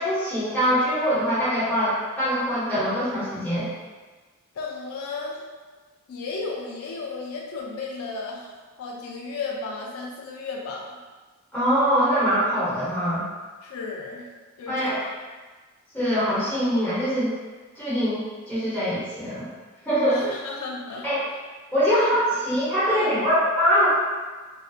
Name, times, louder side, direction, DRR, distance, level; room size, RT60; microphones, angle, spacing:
voice 1, 0.0-3.7 11.5-13.2 14.7-15.0 15.9-17.3 17.7-19.5 19.8-20.2 21.0-21.2 21.7-23.9, equal, 10° left, -12 dB, 0.9 m, -23 dB
voice 2, 4.6-5.4 6.1-8.5 8.8-11.0 13.6-14.3 14.6-15.0 20.1-21.1 21.9-22.1 22.8-23.3, left 4 dB, 80° left, -1 dB, 0.3 m, -34 dB
2.6 x 2.1 x 2.3 m, 1.3 s
head